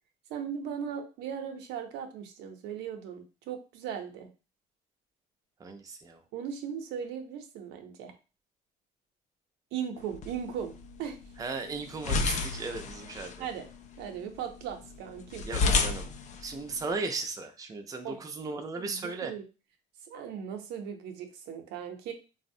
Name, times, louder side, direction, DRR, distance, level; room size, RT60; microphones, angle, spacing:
voice 1, 0.3-4.3 6.3-8.1 9.7-10.7 11.0-11.2 13.4-13.7 14.0-15.4 18.0-18.2 18.7-19.4 20.1-22.1, right 8 dB, 90° right, 5 dB, 0.6 m, -38 dB
voice 2, 5.6-6.2 11.4-13.5 15.4-16.1 16.4-19.3, right 3 dB, 20° right, 5 dB, 0.4 m, -36 dB
sound 1, 10.0-17.0, left 3 dB, 45° left, 0.4 m, -33 dB
3.3 x 2.0 x 2.6 m, 0.32 s
cardioid pair, 110°, 17 cm